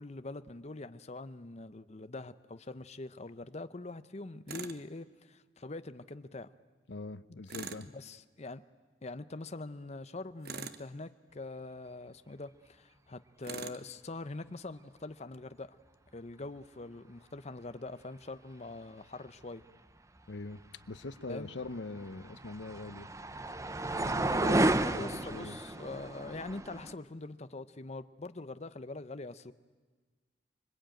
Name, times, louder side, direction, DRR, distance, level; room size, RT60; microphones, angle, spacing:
voice 1, 0.0-6.5 7.9-8.6 9.0-15.7 16.1-19.6 21.3-21.5 24.7-29.5, left 2 dB, 40° left, 12 dB, 0.8 m, -43 dB
Tools, 4.5-4.8 7.5-7.9 10.4-10.9 13.4-13.8, right 5 dB, 60° right, 1.0 m, -42 dB
voice 2, 6.9-7.9 20.3-23.1 24.0-25.6, left 3 dB, 80° left, 14 dB, 0.8 m, -42 dB
sound 1, 21.6-26.9, right 2 dB, 20° right, 0.7 m, -32 dB
25.5 x 23.5 x 9.1 m, 1.4 s
head